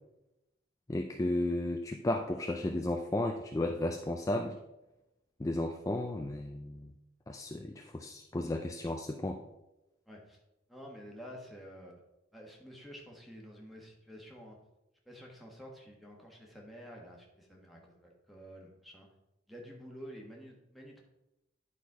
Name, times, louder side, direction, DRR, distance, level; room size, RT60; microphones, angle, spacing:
voice 1, 0.9-4.6 5.4-6.9 7.3-9.4, left 1 dB, 20° left, 4 dB, 0.4 m, -34 dB
voice 2, 10.1-10.4 10.7-12.0 12.3-14.6 15.0-19.1 19.5-21.0, equal, ahead, -1 dB, 1.4 m, -50 dB
10.5 x 4.2 x 4.8 m, 0.94 s
head